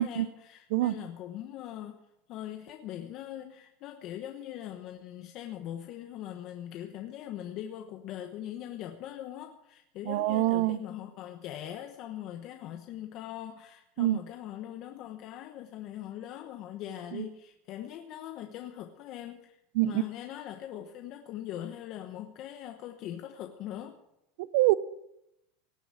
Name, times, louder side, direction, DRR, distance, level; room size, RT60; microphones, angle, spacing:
voice 1, 0.0-2.0 2.3-19.6 19.8-24.0, left 11 dB, 45° left, 6 dB, 1.1 m, -41 dB
voice 2, 0.7-1.1 10.1-10.8 14.0-14.2 17.1-17.3 19.7-20.0 24.4-24.7, right 18 dB, 65° right, 17 dB, 0.6 m, -25 dB
18.0 x 7.2 x 9.0 m, 0.84 s
supercardioid pair, 150°, 0 cm